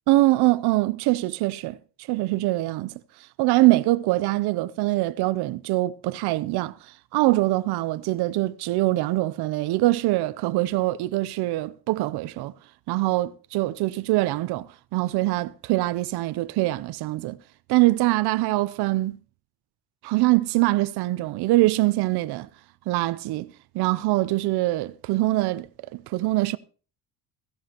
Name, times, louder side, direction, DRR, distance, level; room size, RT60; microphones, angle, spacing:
voice 1, 0.1-2.9 3.4-12.5 12.9-17.4 17.7-19.2 20.0-22.5 22.9-23.5 23.7-25.7 25.9-26.6, right 18 dB, 70° right, 0.6 m, -23 dB
16.5 x 14.0 x 2.9 m
cardioid pair, 145°, 40 cm